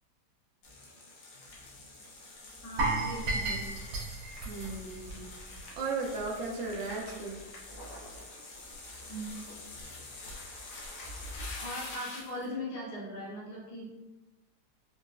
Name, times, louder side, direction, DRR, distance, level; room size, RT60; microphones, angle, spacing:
sound 1, 0.6-12.5, left 2 dB, 85° left, 1.4 m, -46 dB
voice 1, 2.6-3.7 9.1-9.3 9.7-9.8 11.5-13.9, equal, 70° left, -6 dB, 1.5 m, -40 dB
sound 2, 2.8-5.8 6.1-6.3 6.7-6.8, right 2 dB, 90° right, 1.3 m, -33 dB
voice 2, 4.4-5.3 5.8-7.4, right 3 dB, 65° right, -1 dB, 0.7 m, -35 dB
3.8 x 2.4 x 2.3 m, 1.0 s
omnidirectional pair, 1.9 m